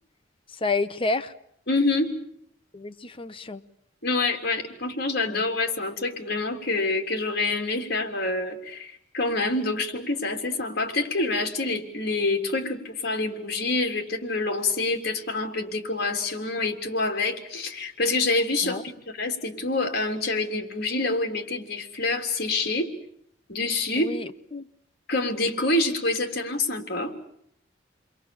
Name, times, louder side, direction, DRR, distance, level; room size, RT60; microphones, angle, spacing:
voice 1, 0.6-1.3 2.7-3.6 5.3-5.4 18.6-18.8 23.9-24.7, left 3 dB, 30° left, 1.0 m, -29 dB
voice 2, 1.7-2.1 4.0-22.9 23.5-24.1 25.1-27.1, left 2 dB, 55° left, 3.5 m, -27 dB
29.0 x 22.5 x 7.1 m
head